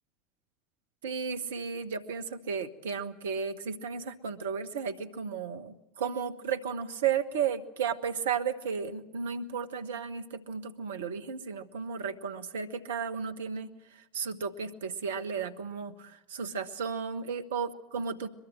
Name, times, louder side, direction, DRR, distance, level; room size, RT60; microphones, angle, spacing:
voice 1, 1.0-18.3, right 6 dB, 70° right, 9 dB, 1.3 m, -34 dB
22.5 x 22.5 x 7.8 m, 0.88 s
figure-of-eight pair, 75°, 0 cm